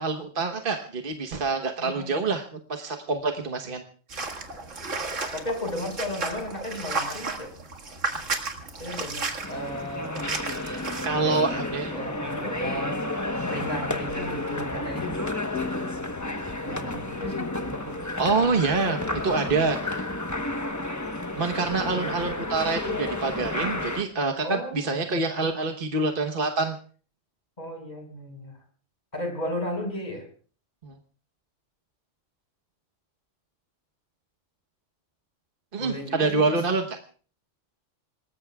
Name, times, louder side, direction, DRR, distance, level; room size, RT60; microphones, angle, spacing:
voice 1, 0.0-3.8 10.6-12.0 18.2-19.0 19.2-20.0 21.3-26.8 30.8-30.9 35.7-37.0, right 3 dB, 45° right, 5 dB, 1.3 m, -26 dB
voice 2, 1.8-2.1 5.3-7.5 8.8-10.2 11.2-11.4 11.9-13.0 13.3-15.2 16.6-18.0 19.3-19.6 24.4-25.0 27.6-28.6 29.1-30.3 35.8-36.5, left 1 dB, 35° left, 3 dB, 5.4 m, -35 dB
deep water footsteps, 4.1-11.1, right 3 dB, 75° right, 2.4 m, -33 dB
sound 1, 9.4-24.0, left 2 dB, 15° left, 1.0 m, -31 dB
sound 2, 15.5-19.0, left 6 dB, 80° left, 1.8 m, -41 dB
26.5 x 19.5 x 2.3 m, 0.41 s
omnidirectional pair, 1.3 m